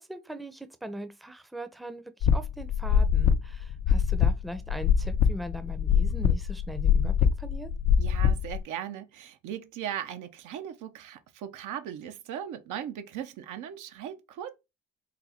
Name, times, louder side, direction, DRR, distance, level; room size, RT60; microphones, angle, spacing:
voice 1, 0.0-7.7, equal, ahead, 0.5 m, -40 dB
sound 1, 2.2-8.6, left 7 dB, 65° left, 0.5 m, -23 dB
voice 2, 8.0-14.5, right 10 dB, 90° right, 0.7 m, -38 dB
4.1 x 2.2 x 4.2 m
cardioid pair, 90°, 30 cm